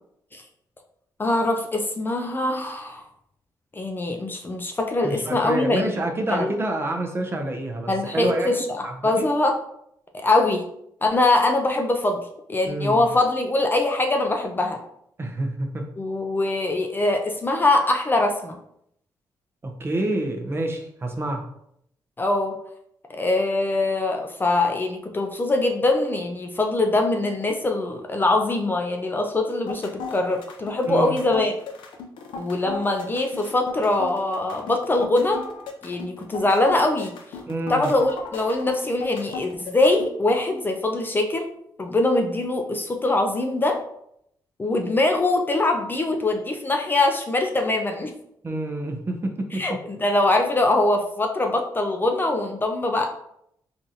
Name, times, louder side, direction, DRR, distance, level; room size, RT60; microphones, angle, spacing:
voice 1, 1.2-3.0 3.7-5.9 6.3-6.5 7.9-9.5 10.1-10.6 11.0-12.2 12.5-14.8 16.0-18.6 22.2-22.5 23.1-31.5 32.4-35.4 35.8-37.1 37.7-41.5 41.8-43.8 44.6-48.1 49.5-53.1, left 2 dB, 25° left, 3 dB, 0.4 m, -23 dB
voice 2, 5.0-9.3 12.7-13.1 15.2-15.9 19.6-21.4 30.9-31.2 37.5-37.9 48.4-49.6, right 1 dB, 30° right, 3 dB, 0.6 m, -28 dB
sound 1, 29.5-40.1, left 4 dB, 85° left, 0.5 m, -36 dB
3.8 x 2.5 x 2.7 m, 0.73 s
cardioid pair, 95°, 8 cm